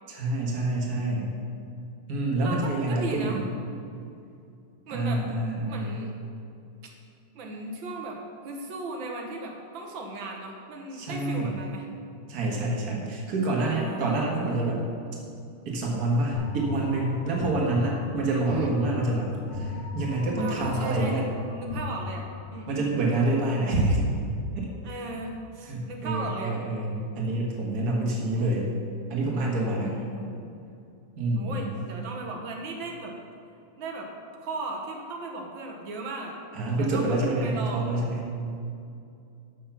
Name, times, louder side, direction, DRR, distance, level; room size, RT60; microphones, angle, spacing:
voice 1, 0.1-1.3 2.1-3.4 4.9-6.0 10.9-11.5 12.3-14.8 15.7-21.2 22.7-24.0 24.6-25.0 25.6-28.7 29.1-29.9 31.2-31.8 36.5-38.3, right 2 dB, 50° right, -3 dB, 2.0 m, -27 dB
voice 2, 2.4-3.4 4.9-5.2 5.7-6.1 7.3-8.2 8.4-11.9 13.5-14.3 18.5-18.7 20.4-22.3 22.5-22.9 24.8-26.6 28.2-28.5 29.8-30.5 31.3-33.1 33.8-34.1 34.4-36.4 36.7-37.2 37.4-37.9, right 2 dB, 70° right, 1 dB, 1.9 m, -37 dB
sound 1, 16.3-22.7, left 4 dB, 65° left, 1.6 m, -37 dB
8.5 x 6.5 x 5.7 m, 2.5 s
omnidirectional pair, 2.3 m